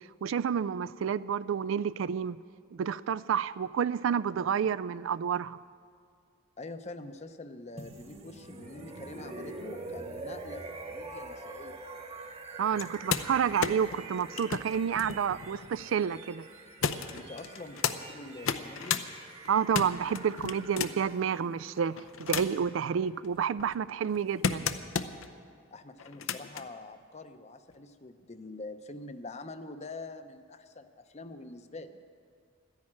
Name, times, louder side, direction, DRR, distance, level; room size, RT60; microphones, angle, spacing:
voice 1, 0.2-2.4 2.7-5.6 12.6-16.4 19.5-24.7, right 7 dB, 70° right, 18 dB, 0.3 m, -29 dB
voice 2, 6.6-11.8 17.1-19.0 25.7-32.0, left 2 dB, 35° left, 10 dB, 0.7 m, -45 dB
sound 1, 7.8-23.6, right 3 dB, 30° right, 1.2 m, -46 dB
sound 2, 12.7-16.0 16.8-18.0 18.4-19.1 19.5-21.1 21.8-22.7 23.2-25.3 26.0-26.7 27.7-27.8, left 6 dB, 75° left, 0.7 m, -34 dB
13.0 x 10.5 x 8.7 m, 2.1 s
head